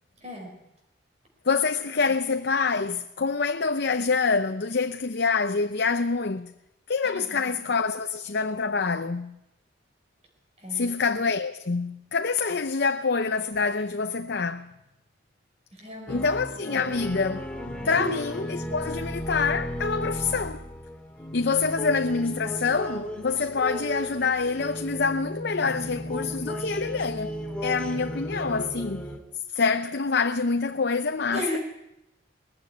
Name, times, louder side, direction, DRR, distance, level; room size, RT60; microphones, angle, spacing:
voice 1, 0.2-0.6 7.0-7.5 10.6-10.9 15.7-16.3 16.7-16.8 17.8-18.1 31.3-31.6, equal, 35° right, 4.5 m, -35 dB
voice 2, 1.5-6.5 6.9-9.3 10.7-14.7 16.1-17.4 17.8-20.6 21.3-27.4 27.6-29.0 29.5-31.6, left 4 dB, 60° left, 0.6 m, -26 dB
sound 1, 16.1-29.2, equal, 5° left, 2.2 m, -35 dB
20.0 x 15.0 x 9.6 m
head